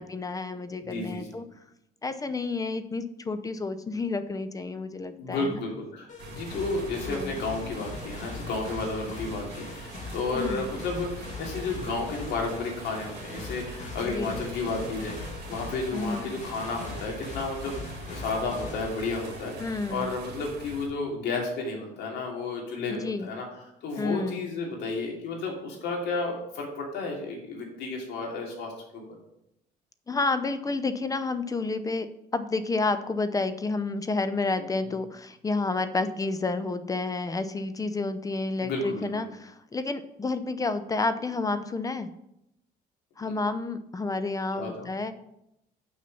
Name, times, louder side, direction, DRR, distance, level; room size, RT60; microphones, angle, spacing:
voice 1, 0.0-1.4 2.0-5.6 7.1-7.3 10.3-10.7 14.0-14.3 15.9-16.3 19.6-20.1 22.9-23.3 24.0-24.4 30.1-42.1 43.2-45.1, left 3 dB, 20° left, 11 dB, 0.6 m, -30 dB
voice 2, 0.8-1.3 5.2-19.5 19.9-23.4 23.8-29.0 38.6-39.3 43.2-43.3 44.5-44.9, left 3 dB, 80° left, -1 dB, 2.7 m, -32 dB
sound 1, 6.1-19.8, left 3 dB, 45° left, 2.0 m, -41 dB
sound 2, 6.2-20.9, right 4 dB, 75° right, 1.8 m, -43 dB
6.3 x 5.6 x 6.9 m, 0.82 s
cardioid pair, 110°, 17 cm